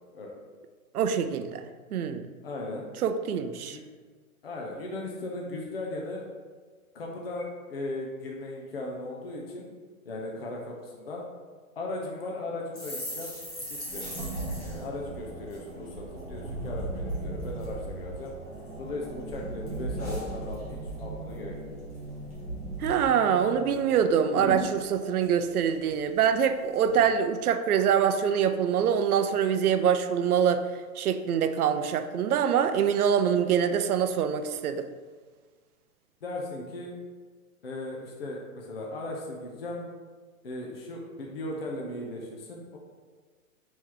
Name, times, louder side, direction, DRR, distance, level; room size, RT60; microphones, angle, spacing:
voice 1, 0.9-2.2 3.0-3.8 22.8-30.6 31.0-34.9, right 8 dB, 80° right, 9 dB, 0.5 m, -25 dB
voice 2, 2.4-2.9 3.7-3.9 4.4-6.3 6.9-9.7 10.0-11.2 11.8-13.3 13.7-14.1 14.6-18.3 18.8-21.6 36.2-36.9 37.6-39.9 40.4-42.8, left 2 dB, 45° left, -1 dB, 0.5 m, -37 dB
sound 1, 12.7-16.3 16.6-16.8 17.1-17.7 18.2-19.0 19.3-21.0 21.3-21.5 21.8-22.4 22.7-22.8 23.1-23.8 24.0-24.1 24.3-26.2 26.7-27.0, left 1 dB, 25° left, 0.9 m, -40 dB
sound 2, 13.8-24.9, right 2 dB, 10° right, 1.4 m, -38 dB
4.5 x 3.0 x 3.7 m, 1.5 s
hypercardioid pair, 180°, 44 cm